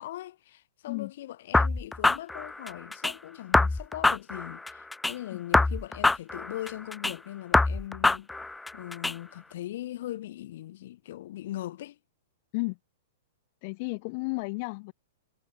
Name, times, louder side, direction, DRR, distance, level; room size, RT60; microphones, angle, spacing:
voice 1, 0.0-8.3 8.7-12.0, left 14 dB, 55° left, 6.6 m, -40 dB
sound 1, 1.5-3.1 3.5-5.1 5.5-7.1 7.5-9.1, left 2 dB, 5° left, 1.0 m, -25 dB
voice 2, 13.6-14.9, left 29 dB, 40° left, 5.6 m, -33 dB
hypercardioid pair, 160°, 0 cm